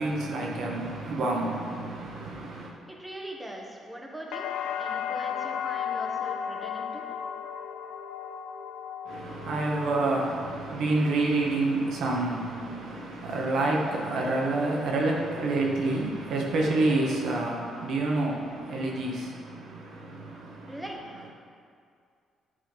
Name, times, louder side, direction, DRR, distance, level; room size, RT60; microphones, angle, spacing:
voice 1, 0.0-2.7 9.1-20.8, right 2 dB, 75° right, -2 dB, 1.4 m, -28 dB
voice 2, 2.9-4.5 4.8-7.0 20.7-21.3, right 1 dB, 10° right, 0 dB, 1.2 m, -41 dB
sound 1, 4.3-12.2 12.6-13.3, left 8 dB, 90° left, 0.3 m, -35 dB
10.0 x 3.8 x 5.3 m, 2.3 s
cardioid pair, 90°, 0 cm